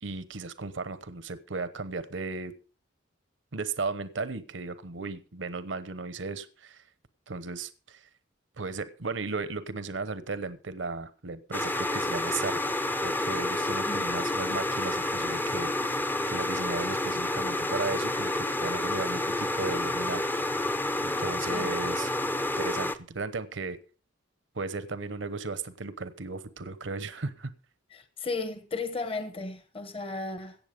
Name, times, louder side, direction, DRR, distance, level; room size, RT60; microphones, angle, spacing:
voice 1, 0.0-2.5 3.5-6.8 7.3-8.1 8.6-20.7 21.0-22.1 22.6-23.8 24.5-27.5, right 3 dB, 75° right, 1.0 m, -36 dB
sound 1, 11.5-23.0, left 1 dB, 10° left, 0.6 m, -29 dB
voice 2, 21.4-21.7 27.9-30.6, left 3 dB, 30° left, 1.1 m, -35 dB
16.5 x 7.4 x 5.2 m
head